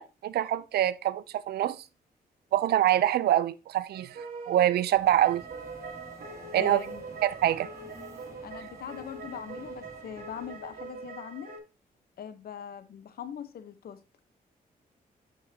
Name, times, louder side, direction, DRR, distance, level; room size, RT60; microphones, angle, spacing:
voice 1, 0.0-1.8 2.5-4.2 4.5-5.4 6.5-6.8 7.2-7.7, right 12 dB, 85° right, 0.6 m, -25 dB
sound 1, 3.9-11.6, right 4 dB, 60° right, 2.7 m, -43 dB
Subway metro underground, 4.9-11.1, right 1 dB, 20° right, 2.8 m, -50 dB
voice 2, 6.5-7.0 8.4-11.5 12.2-14.0, left 8 dB, 70° left, 1.1 m, -41 dB
8.5 x 6.5 x 2.8 m
cardioid pair, 85°, 16 cm